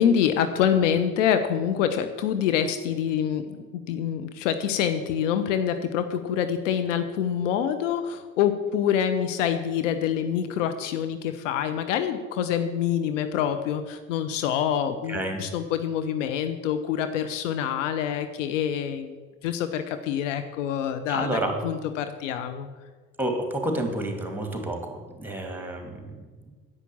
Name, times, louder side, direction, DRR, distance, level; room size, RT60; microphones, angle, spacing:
voice 1, 0.0-19.1 19.4-21.3 21.6-22.7, left 9 dB, 65° left, 9 dB, 0.8 m, -26 dB
voice 2, 15.1-15.4 21.1-21.5 23.2-26.5, right 1 dB, 5° right, 3 dB, 2.5 m, -30 dB
10.0 x 8.4 x 7.1 m, 1.4 s
figure-of-eight pair, 55°, 40 cm